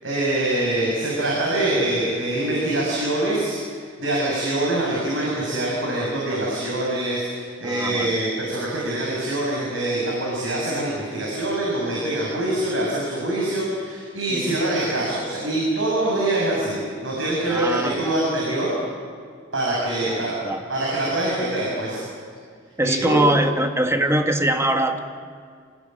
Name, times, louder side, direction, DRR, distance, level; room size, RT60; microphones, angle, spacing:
voice 1, 0.0-18.7 19.5-20.3 20.7-22.0 22.8-23.2, right 1 dB, 80° right, -4 dB, 6.6 m, -24 dB
voice 2, 7.6-8.2 14.3-14.6 17.5-18.2 20.1-20.7 22.8-25.0, right 1 dB, 15° right, 5 dB, 1.7 m, -23 dB
26.5 x 19.0 x 8.9 m, 2.1 s
head